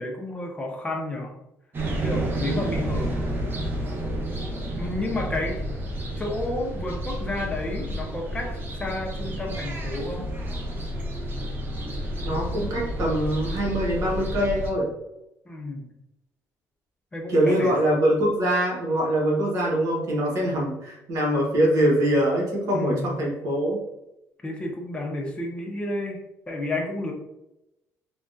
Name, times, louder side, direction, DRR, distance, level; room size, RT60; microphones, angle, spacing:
voice 1, 0.0-1.3 2.0-3.3 4.8-5.6 6.2-10.3 15.5-15.9 17.1-17.7 22.7-23.2 24.4-27.1, left 1 dB, 15° left, 1 dB, 0.6 m, -31 dB
sound 1, 1.7-14.7, right 1 dB, 35° right, 0.7 m, -30 dB
voice 2, 12.2-14.9 17.3-23.8, right 1 dB, 65° right, -3 dB, 1.1 m, -23 dB
3.4 x 2.3 x 2.6 m, 0.89 s
cardioid pair, 115°, 6 cm